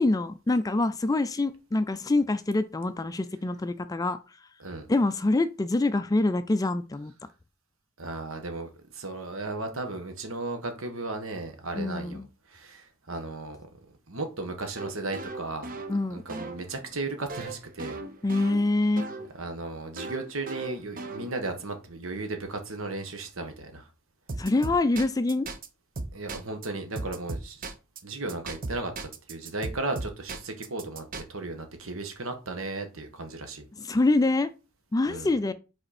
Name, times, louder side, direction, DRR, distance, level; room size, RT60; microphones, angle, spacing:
voice 1, 0.0-4.2 4.9-7.1 11.8-12.3 15.9-16.2 18.2-19.1 24.4-25.5 33.8-34.5 34.9-35.5, left 2 dB, 15° left, 0.3 m, -25 dB
voice 2, 8.0-13.7 14.1-15.8 16.1-18.0 19.0-23.9 26.1-27.7 28.0-33.7 35.1-35.3, right 2 dB, 70° right, 1.3 m, -35 dB
sound 1, 14.8-19.3 20.0-21.6 24.3-25.7 26.0-26.7 27.0-28.0 28.3-31.2, right 3 dB, 40° right, 0.8 m, -37 dB
5.3 x 4.2 x 4.2 m
head